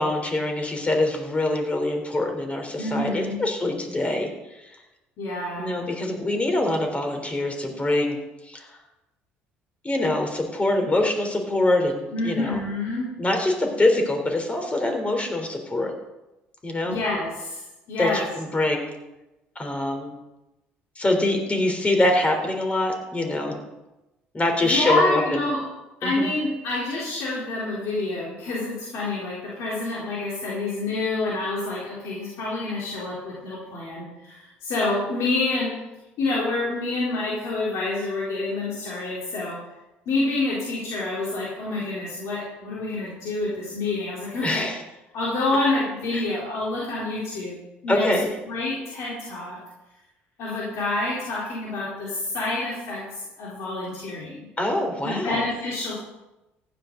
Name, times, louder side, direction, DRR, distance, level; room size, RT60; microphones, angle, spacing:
voice 1, 0.0-4.3 5.6-8.2 8.4-8.7 9.8-12.6 13.2-15.9 16.6-17.0 18.0-18.9 19.6-20.1 21.0-23.6 24.3-25.5 26.0-26.3 44.4-44.8 46.1-46.2 47.9-48.3 54.6-55.5, left 1 dB, 25° left, 3 dB, 3.7 m, -24 dB
voice 2, 2.8-3.4 5.2-5.9 12.1-13.1 16.8-17.6 17.9-18.3 24.6-25.6 26.0-35.8 36.2-39.6 40.1-44.7 45.1-48.1 48.5-49.6 50.4-54.5 55.0-55.9, left 2 dB, 65° left, -6 dB, 3.8 m, -27 dB
15.0 x 11.0 x 4.0 m, 0.99 s
hypercardioid pair, 60°, 5 cm